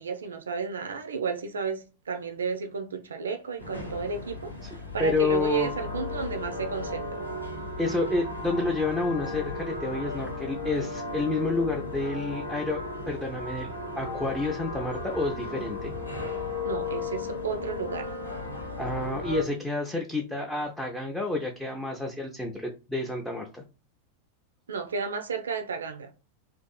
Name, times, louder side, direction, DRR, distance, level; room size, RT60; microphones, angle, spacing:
voice 1, 0.0-7.3 16.6-18.1 24.7-26.1, right 5 dB, 70° right, 0.3 m, -32 dB
sound 1, 3.6-19.4, left 3 dB, 80° left, 0.6 m, -35 dB
voice 2, 5.0-5.7 7.8-13.7 14.0-15.9 18.8-23.6, left 2 dB, 5° left, 0.4 m, -29 dB
2.5 x 2.4 x 2.2 m
figure-of-eight pair, 90°, 0 cm